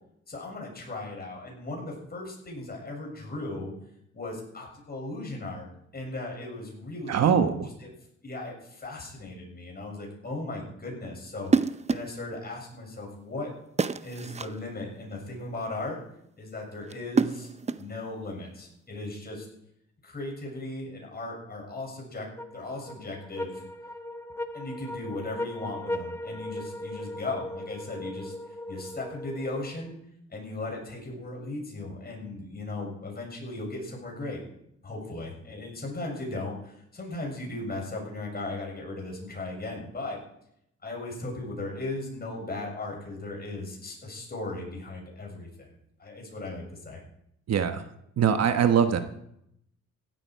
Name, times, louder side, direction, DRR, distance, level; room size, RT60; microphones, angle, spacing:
voice 1, 0.3-3.7 4.1-5.7 5.9-7.3 7.8-7.9 8.2-13.5 14.0-16.0 16.4-17.5 17.8-19.5 20.0-23.6 24.5-30.0 30.3-34.4 34.8-40.2 40.8-45.7 46.0-47.0, left 2 dB, 30° left, 0 dB, 7.1 m, -37 dB
voice 2, 7.1-7.7 47.5-47.8 48.2-49.0, right 7 dB, 55° right, 8 dB, 1.2 m, -22 dB
sound 1, 11.4-12.2 13.8-14.6 16.9-18.0, right 5 dB, 20° right, 0.6 m, -27 dB
sound 2, 22.4-29.9, left 1 dB, 10° left, 0.9 m, -38 dB
16.0 x 12.5 x 4.7 m, 0.74 s
cardioid pair, 90°, 30 cm